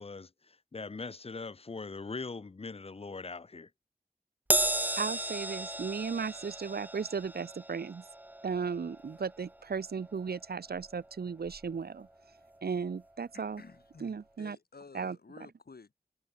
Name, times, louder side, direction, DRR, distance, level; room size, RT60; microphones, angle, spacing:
voice 1, 0.0-3.7, left 4 dB, 35° left, 0.5 m, -41 dB
Crash cymbal, 4.5-11.1 11.5-11.7 12.7-12.8, right 1 dB, 10° right, 0.5 m, -35 dB
voice 2, 5.0-8.0 8.4-12.1 12.6-13.6 14.0-14.6 14.9-15.2, right 5 dB, 75° right, 0.6 m, -35 dB
voice 3, 13.3-15.9, left 4 dB, 70° left, 1.1 m, -53 dB
wide cardioid pair, 45°, 16 cm